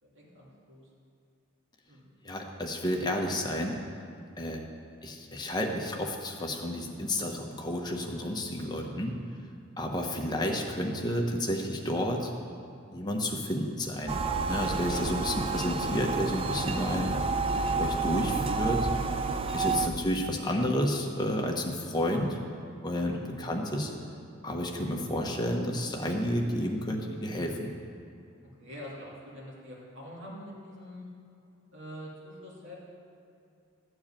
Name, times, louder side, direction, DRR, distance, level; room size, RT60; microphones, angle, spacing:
voice 1, 0.0-0.9 1.9-2.1 8.8-9.2 19.8-20.2 23.2-23.5 28.6-31.1 31.7-32.7, equal, 60° right, -6 dB, 2.8 m, -45 dB
voice 2, 2.2-3.8 4.4-4.6 5.0-9.1 9.8-12.3 12.9-14.2 14.4-17.1 17.8-18.9 19.5-22.4 22.8-23.9 24.4-27.7, left 1 dB, 20° left, 1 dB, 1.0 m, -31 dB
sound 1, 14.1-19.9, right 4 dB, 25° right, 0.4 m, -30 dB
13.0 x 4.7 x 8.8 m, 2.6 s
head